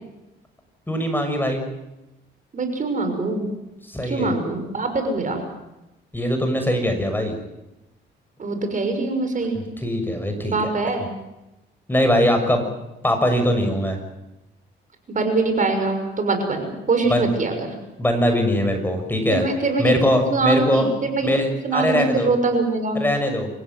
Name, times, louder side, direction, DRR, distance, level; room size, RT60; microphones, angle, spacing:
voice 1, 0.9-1.6 3.9-4.3 6.1-7.3 9.5-10.7 11.9-12.6 13.0-14.0 17.1-17.3 18.0-19.4 19.8-20.9 21.2-22.3 22.9-23.5, equal, 10° left, 5 dB, 6.5 m, -21 dB
voice 2, 2.5-3.5 4.1-5.4 8.4-9.6 10.4-11.1 15.1-17.7 19.3-23.0, right 3 dB, 40° right, 6 dB, 6.2 m, -23 dB
27.5 x 16.5 x 9.4 m, 0.97 s
cardioid pair, 90°, 20 cm